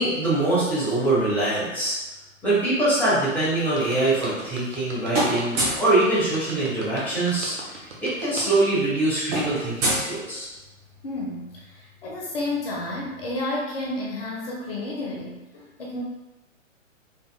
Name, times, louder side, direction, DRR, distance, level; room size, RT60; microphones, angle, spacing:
voice 1, 0.0-2.0 2.4-10.5, right 2 dB, 5° left, -10 dB, 1.0 m, -23 dB
sound 1, 3.3-8.6, right 2 dB, 60° right, 1.1 m, -39 dB
sound 2, 4.1-4.8 5.1-5.9 7.3-7.4 7.6-7.8 8.1-10.8, right 1 dB, 30° right, 1.5 m, -28 dB
voice 2, 11.0-16.0, left 2 dB, 45° left, -3 dB, 0.9 m, -31 dB
4.4 x 3.4 x 2.3 m, 1.0 s
figure-of-eight pair, 120°, 39 cm